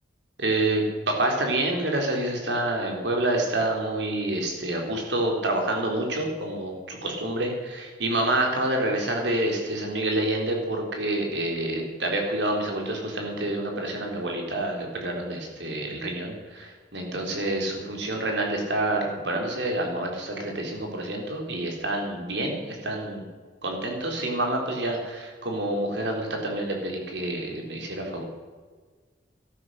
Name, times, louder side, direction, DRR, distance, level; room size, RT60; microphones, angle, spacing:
voice 1, 0.4-23.2 23.6-28.2, right 1 dB, 75° right, 1 dB, 3.9 m, -28 dB
14.0 x 12.0 x 6.6 m, 1.5 s
head